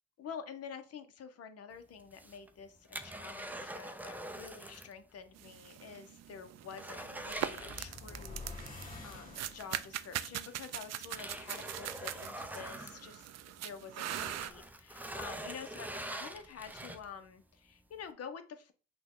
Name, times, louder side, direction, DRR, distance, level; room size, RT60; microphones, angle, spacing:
voice 1, 0.2-18.7, left 6 dB, 55° left, 9 dB, 0.8 m, -48 dB
sound 1, 2.0-5.0 5.3-5.4 5.8-5.9 6.3-8.3 9.7-9.8 10.5-13.6 13.9-17.3 17.8-17.9, right 1 dB, 5° right, 0.5 m, -44 dB
sound 2, 5.4-14.5, right 12 dB, 60° right, 0.4 m, -42 dB
sound 3, 7.2-10.0, left 3 dB, 25° left, 2.1 m, -48 dB
5.9 x 2.3 x 3.7 m, 0.36 s
cardioid pair, 90°, 30 cm